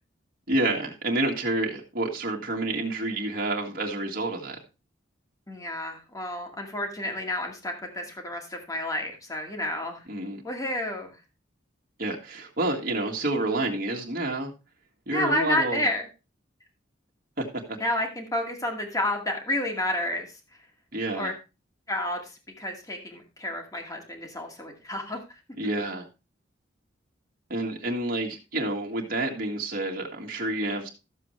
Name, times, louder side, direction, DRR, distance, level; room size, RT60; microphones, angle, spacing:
voice 1, 0.5-4.6 10.1-10.4 12.0-14.5 15.1-15.9 17.4-17.6 20.9-21.3 25.6-26.1 27.5-30.9, right 2 dB, 50° right, -1 dB, 2.0 m, -29 dB
voice 2, 5.5-10.0 10.4-11.1 15.1-16.1 17.8-20.3 21.1-21.4 21.9-22.3 22.6-25.2, left 1 dB, 20° left, 3 dB, 2.2 m, -30 dB
13.0 x 7.4 x 3.2 m, 0.28 s
head